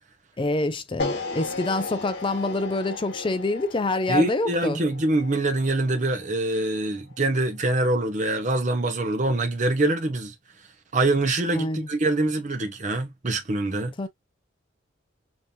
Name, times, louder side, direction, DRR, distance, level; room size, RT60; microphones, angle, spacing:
voice 1, 0.4-4.8 11.5-11.9 14.0-14.1, left 2 dB, 25° left, 0.4 m, -26 dB
sound 1, 1.0-7.2, left 3 dB, 60° left, 1.8 m, -36 dB
voice 2, 4.1-10.3 10.9-13.9, right 2 dB, 40° right, 0.8 m, -24 dB
5.2 x 2.8 x 2.8 m
head